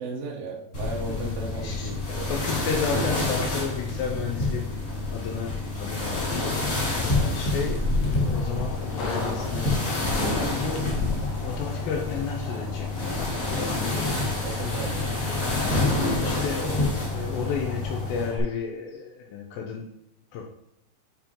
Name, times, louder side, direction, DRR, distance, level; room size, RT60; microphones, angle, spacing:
voice 1, 0.0-2.4 7.1-7.6 14.4-15.2, right 3 dB, 90° right, -1 dB, 1.9 m, -36 dB
sound 1, 0.7-18.3, left 2 dB, 40° left, 1.2 m, -27 dB
voice 2, 1.1-6.6 7.0-7.8 8.2-9.9 10.3-10.9 11.4-14.2 14.6-14.9 16.2-19.9 20.3-20.4, left 6 dB, 85° left, 1 dB, 2.4 m, -33 dB
sound 2, 7.8-18.4, left 2 dB, 65° left, 2.3 m, -40 dB
9.1 x 5.3 x 2.9 m, 0.81 s
omnidirectional pair, 5.8 m